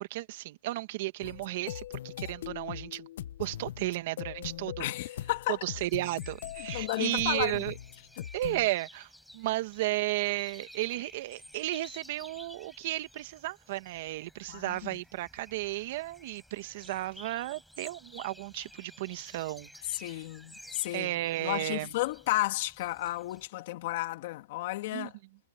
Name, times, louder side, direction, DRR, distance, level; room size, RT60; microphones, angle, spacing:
voice 1, 0.0-3.1 3.4-4.9 5.5-7.7 8.3-20.2 20.9-21.9 24.9-25.1, right 17 dB, 50° right, 1.6 m, -34 dB
sound 1, 1.2-8.7, left 11 dB, 70° left, 1.0 m, -41 dB
voice 2, 4.8-5.6 6.7-7.6 8.2-8.3 14.5-15.0 19.9-21.1 21.4-25.1, left 18 dB, 50° left, 2.4 m, -33 dB
sound 2, 5.8-23.5, equal, ahead, 5.7 m, -53 dB
hypercardioid pair, 155°, 0 cm